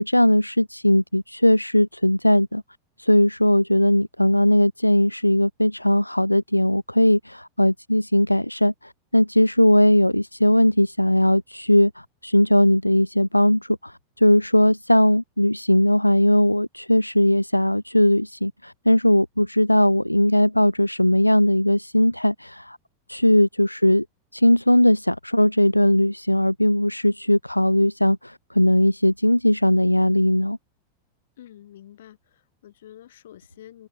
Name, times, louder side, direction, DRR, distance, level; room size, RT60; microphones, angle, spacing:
voice 1, 0.0-2.6 3.0-22.8 23.1-24.0 24.3-30.6, left 1 dB, 90° left, 0.8 m, -19 dB
voice 2, 31.4-33.9, left 12 dB, 60° left, 7.0 m, -47 dB
open air
figure-of-eight pair, 90°, 0 cm